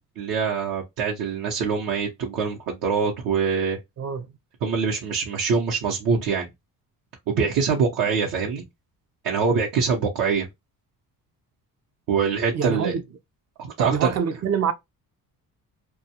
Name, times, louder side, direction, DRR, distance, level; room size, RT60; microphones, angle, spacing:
voice 1, 0.2-3.8 4.6-6.5 7.3-8.6 9.2-10.5 12.1-13.0 13.6-14.2, right 5 dB, 70° right, 0.8 m, -24 dB
voice 2, 4.0-4.3 12.5-13.0 13.8-14.7, right 7 dB, 45° right, 0.6 m, -25 dB
2.3 x 2.2 x 2.8 m
cardioid pair, 120°, 36 cm